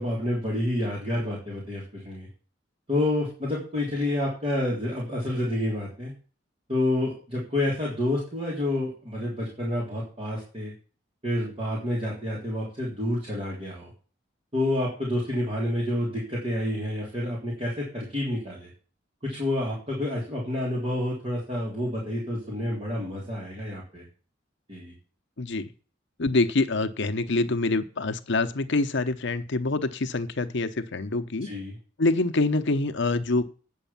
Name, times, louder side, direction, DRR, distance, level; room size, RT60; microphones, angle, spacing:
voice 1, 0.0-2.3 2.9-6.1 6.7-10.7 11.2-13.9 14.5-18.7 19.2-24.0 24.7-24.9 31.4-31.8, left 1 dB, 30° right, -5 dB, 3.4 m, -29 dB
voice 2, 25.4-25.7 26.2-31.5 32.0-33.5, left 2 dB, 65° left, 9 dB, 0.9 m, -25 dB
9.3 x 6.4 x 7.2 m, 0.38 s
head